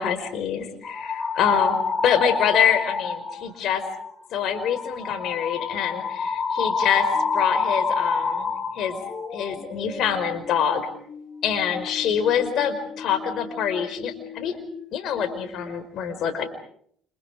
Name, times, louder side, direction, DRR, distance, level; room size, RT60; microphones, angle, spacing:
voice 1, 0.0-3.8 4.3-7.1 7.3-9.0 9.3-10.9 11.4-14.6 14.9-16.5, left 8 dB, 60° left, 9 dB, 5.1 m, -25 dB
sound 1, 0.8-3.4 3.8-4.1 4.5-14.9 15.1-15.8, left 4 dB, 30° left, 6.2 m, -29 dB
29.5 x 29.5 x 4.9 m, 0.66 s
hypercardioid pair, 60°, 0 cm